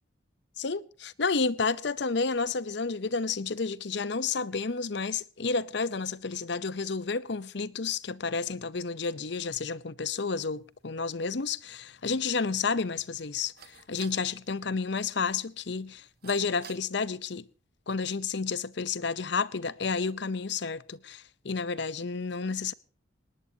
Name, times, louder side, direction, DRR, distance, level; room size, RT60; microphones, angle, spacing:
voice 1, 0.6-17.5 17.9-22.7, left 4 dB, 60° left, 0.7 m, -31 dB
sound 1, 10.4-16.8, right 7 dB, 50° right, 1.5 m, -56 dB
19.5 x 18.5 x 2.8 m
head